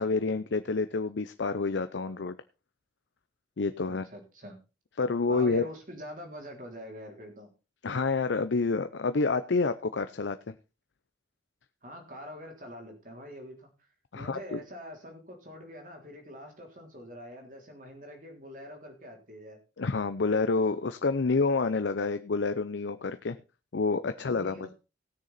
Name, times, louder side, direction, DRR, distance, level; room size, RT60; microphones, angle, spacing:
voice 1, 0.0-2.3 3.6-4.1 5.0-5.6 7.8-10.5 14.1-14.6 19.8-23.4 23.7-24.7, left 4 dB, 80° left, 11 dB, 0.6 m, -28 dB
voice 2, 3.9-4.6 5.3-7.5 11.8-13.7 14.1-19.6 24.1-24.7, equal, 45° right, 2 dB, 3.4 m, -45 dB
18.0 x 6.6 x 4.1 m, 0.30 s
head